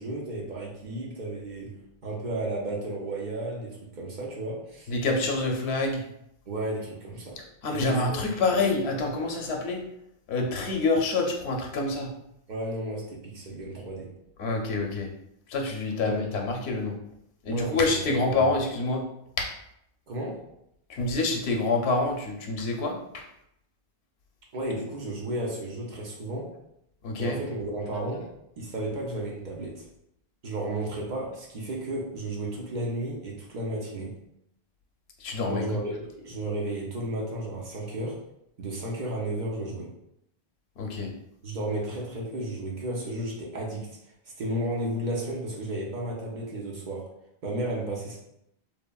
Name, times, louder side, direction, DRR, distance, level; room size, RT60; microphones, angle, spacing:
voice 1, 0.0-4.9 6.5-7.4 7.7-8.3 12.5-14.1 16.0-16.2 17.5-18.5 20.1-20.4 24.5-26.5 27.2-28.3 28.6-29.9 30.4-34.2 35.5-38.2 38.6-39.9 41.4-44.0 44.4-47.1 47.4-48.2, right 1 dB, 55° right, -2 dB, 0.6 m, -33 dB
voice 2, 4.9-6.0 7.6-9.8 10.3-12.1 14.4-15.1 15.5-17.0 17.5-19.0 19.4-19.5 20.9-23.2 27.0-27.4 35.2-35.6 40.8-41.1, left 3 dB, 90° left, 2 dB, 0.8 m, -27 dB
3.1 x 2.0 x 2.2 m, 0.79 s
omnidirectional pair, 1.0 m